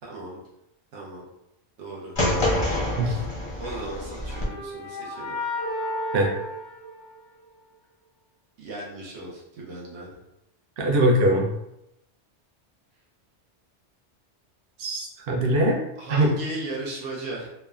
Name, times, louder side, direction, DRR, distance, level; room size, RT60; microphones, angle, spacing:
voice 1, 0.0-0.4 0.9-1.3 1.8-2.2 3.0-3.2 3.6-5.4 8.6-10.2 16.0-17.5, right 2 dB, 85° right, -4 dB, 1.0 m, -36 dB
sound 1, 2.2-4.4, left 1 dB, 35° left, 0.5 m, -26 dB
sound 2, 3.7-7.6, left 1 dB, 90° left, 0.9 m, -33 dB
voice 2, 10.8-11.5 14.8-15.8 16.1-16.3, right 1 dB, 60° right, -1 dB, 0.7 m, -21 dB
3.0 x 2.1 x 2.3 m, 0.85 s
omnidirectional pair, 1.2 m